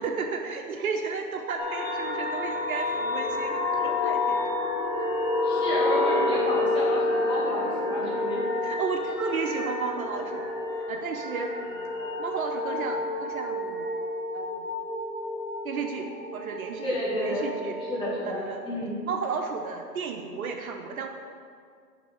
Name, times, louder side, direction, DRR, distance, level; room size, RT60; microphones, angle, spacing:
voice 1, 0.0-4.4 8.6-10.5 10.9-11.5 12.2-13.9 14.3-14.7 15.6-17.8 18.2-18.6 19.1-21.1, right 5 dB, 60° right, 4 dB, 0.8 m, -33 dB
sound 1, 1.6-18.1, left 2 dB, 35° left, 1.7 m, -29 dB
voice 2, 5.4-8.4 16.8-19.0, left 1 dB, 10° left, -7 dB, 1.7 m, -30 dB
6.0 x 5.2 x 6.3 m, 2.2 s
hypercardioid pair, 140°, 49 cm